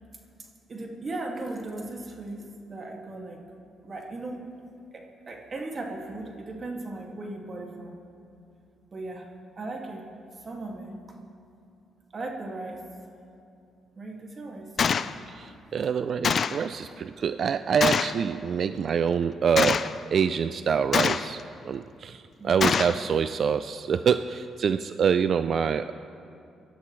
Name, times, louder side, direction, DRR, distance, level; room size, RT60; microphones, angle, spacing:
voice 1, 0.4-3.4 3.8-4.4 4.9-8.0 8.9-9.3 9.6-10.1 10.4-11.0 12.1-12.8 14.0-15.1 22.4-22.7, right 2 dB, 40° right, 0 dB, 2.2 m, -37 dB
Gunshot gunfire, 14.8-15.1 16.2-16.6 17.8-18.2 19.6-20.0 20.9-21.4 22.6-23.0, left 6 dB, 50° left, 0.4 m, -24 dB
voice 2, 15.3-19.8 20.1-21.4 21.7-25.9, right 7 dB, 55° right, 11 dB, 0.4 m, -26 dB
25.0 x 12.0 x 3.2 m, 2.6 s
cardioid pair, 90°, 0 cm